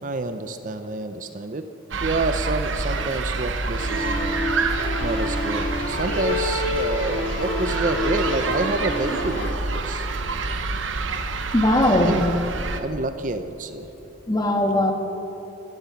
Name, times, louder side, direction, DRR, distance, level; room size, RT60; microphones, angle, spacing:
voice 1, 0.0-1.7 2.0-4.4 5.0-10.1 12.0-13.9, right 2 dB, 45° right, 9 dB, 0.6 m, -28 dB
sound 1, 1.9-12.8, right 3 dB, 90° right, 0.9 m, -27 dB
sound 2, 3.8-9.5, left 2 dB, 75° left, 2.8 m, -28 dB
voice 2, 11.5-12.2 14.3-14.9, left 1 dB, 20° left, 3 dB, 1.5 m, -19 dB
15.5 x 13.5 x 5.9 m, 3.0 s
head